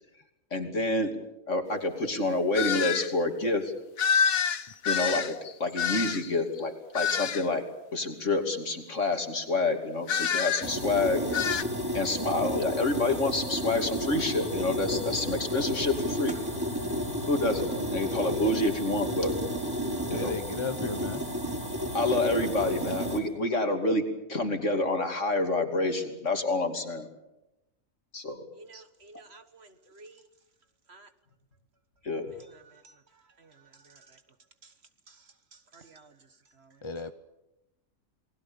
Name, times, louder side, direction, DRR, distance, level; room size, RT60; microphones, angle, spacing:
voice 1, 0.5-1.1 1.5-3.7 4.8-5.3 5.6-7.6 7.9-11.2 11.9-16.4 17.3-19.3 20.1-20.3 21.9-24.0 24.3-27.1 28.1-28.4 32.0-32.3, left 2 dB, 60° left, 5 dB, 3.2 m, -28 dB
sound 1, 2.5-3.1 4.0-6.4 7.0-7.5 10.1-10.7 11.3-11.6, left 7 dB, 90° left, 1.5 m, -27 dB
sound 2, 10.6-23.2, equal, 15° right, 5.1 m, -32 dB
voice 2, 20.1-21.2 36.8-37.1, left 4 dB, 25° left, 9 dB, 0.8 m, -34 dB
voice 3, 28.5-30.2 30.9-31.1 32.4-33.0 33.4-34.2 34.6-34.7 35.1-35.2 35.5-36.1 36.6-36.8, right 3 dB, 50° right, 10 dB, 1.7 m, -53 dB
29.0 x 20.5 x 7.1 m, 0.92 s
omnidirectional pair, 1.4 m